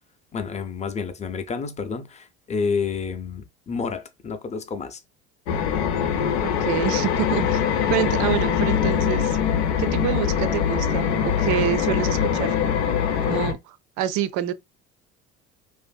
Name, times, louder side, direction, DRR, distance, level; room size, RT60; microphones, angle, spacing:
voice 1, 0.3-5.0, left 5 dB, 20° left, 0.4 m, -29 dB
sound 1, 5.5-13.5, left 8 dB, 85° left, 0.5 m, -23 dB
voice 2, 6.4-7.6 7.9-9.4 9.8-12.6 13.2-14.5, right 12 dB, 60° right, 0.5 m, -27 dB
2.5 x 2.5 x 2.2 m
hypercardioid pair, 80°, 34 cm